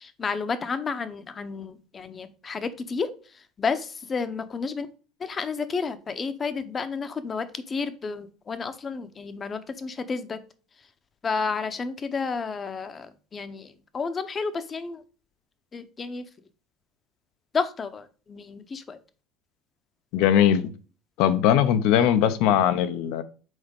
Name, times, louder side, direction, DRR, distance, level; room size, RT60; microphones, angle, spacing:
voice 1, 0.0-4.9 5.2-10.4 11.2-15.0 15.7-16.3 17.5-19.0, left 5 dB, 25° left, 0.8 m, -31 dB
voice 2, 20.1-20.7 21.2-23.2, left 10 dB, 70° left, 0.8 m, -20 dB
6.4 x 4.3 x 5.3 m
cardioid pair, 140°, 0 cm